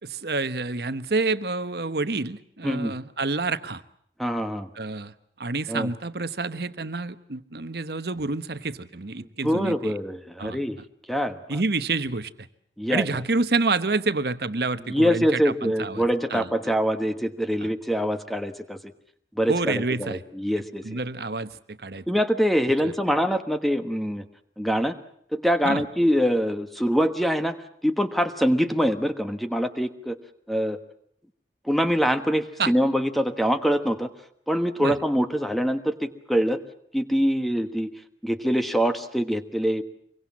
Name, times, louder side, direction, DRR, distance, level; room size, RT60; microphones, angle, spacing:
voice 1, 0.0-3.8 4.7-5.1 5.4-9.9 10.4-10.6 11.5-12.5 12.9-16.5 17.6-17.7 19.5-20.2 20.8-22.0 22.8-22.9 25.6-25.8 32.6-32.7 34.8-35.0, right 3 dB, 60° right, 12 dB, 1.1 m, -28 dB
voice 2, 4.2-4.7 5.7-5.9 9.4-10.8 11.1-11.6 12.8-13.1 14.9-18.9 19.4-21.0 22.1-24.2 24.6-24.9 25.3-30.2 30.5-30.8 31.7-34.1 34.5-36.6 36.9-37.9 38.2-39.8, equal, ahead, 8 dB, 1.2 m, -24 dB
25.0 x 23.0 x 7.4 m, 0.68 s
head